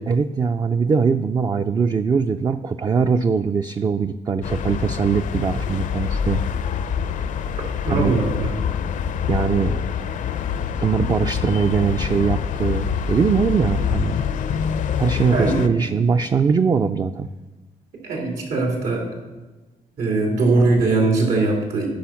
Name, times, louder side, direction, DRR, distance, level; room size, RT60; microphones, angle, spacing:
voice 1, 0.1-6.4 7.9-8.2 9.3-9.8 10.8-14.2 15.0-17.3, right 5 dB, 30° right, 8 dB, 0.3 m, -21 dB
sound 1, 4.4-15.7, left 8 dB, 65° left, 0.5 m, -25 dB
voice 2, 7.8-8.5 15.3-15.6 18.0-19.0 20.0-21.9, right 3 dB, 85° right, -1 dB, 3.1 m, -20 dB
10.5 x 5.6 x 5.8 m, 1.2 s
cardioid pair, 110°, 14 cm